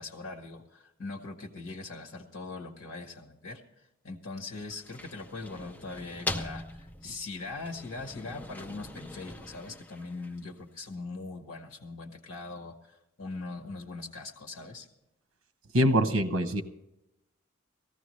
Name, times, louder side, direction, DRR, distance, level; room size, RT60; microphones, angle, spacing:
voice 1, 0.0-3.6 4.0-14.9, left 3 dB, 65° left, 2 dB, 1.4 m, -41 dB
sound 1, 4.6-10.6, left 2 dB, 10° left, 0.5 m, -41 dB
voice 2, 15.7-16.6, equal, 80° right, 8 dB, 0.9 m, -24 dB
18.5 x 14.5 x 3.2 m, 0.90 s
head